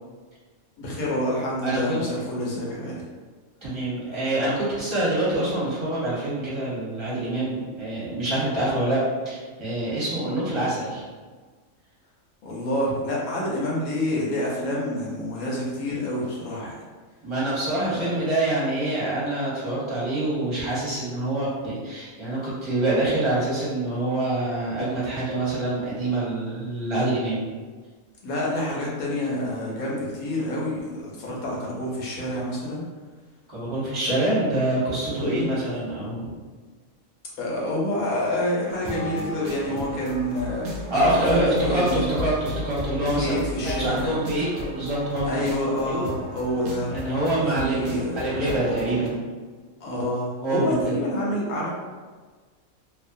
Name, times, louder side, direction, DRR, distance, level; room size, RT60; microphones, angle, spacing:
voice 1, 0.8-3.0 12.4-16.9 17.8-18.2 28.2-32.8 35.1-35.6 37.4-42.0 43.1-44.2 45.3-46.9 47.4-48.7 49.8-51.7, left 1 dB, 90° left, -4 dB, 1.2 m, -28 dB
voice 2, 1.6-2.0 3.6-11.0 17.2-27.5 33.5-36.3 40.9-43.4 43.6-45.5 45.9-46.0 46.9-49.2 50.4-50.9, right 1 dB, 25° right, -8 dB, 0.9 m, -25 dB
sound 1, 38.7-49.1, left 1 dB, 75° right, 0.4 m, -35 dB
2.8 x 2.1 x 2.5 m, 1.4 s
omnidirectional pair, 1.5 m